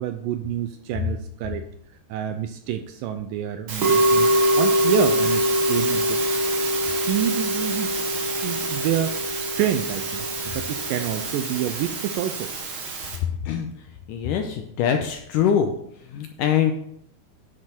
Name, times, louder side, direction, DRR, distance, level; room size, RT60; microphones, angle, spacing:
voice 1, 0.0-1.7 2.1-4.3 4.6-5.4 5.7-6.2 6.8-8.0 8.4-12.5, right 10 dB, 85° right, 8 dB, 2.0 m, -28 dB
Musical instrument, 3.7-13.2, right 1 dB, 55° right, 1.5 m, -24 dB
voice 2, 14.1-15.7 16.1-16.7, left 8 dB, 80° left, 5 dB, 1.9 m, -23 dB
9.9 x 6.7 x 4.4 m, 0.71 s
omnidirectional pair, 4.4 m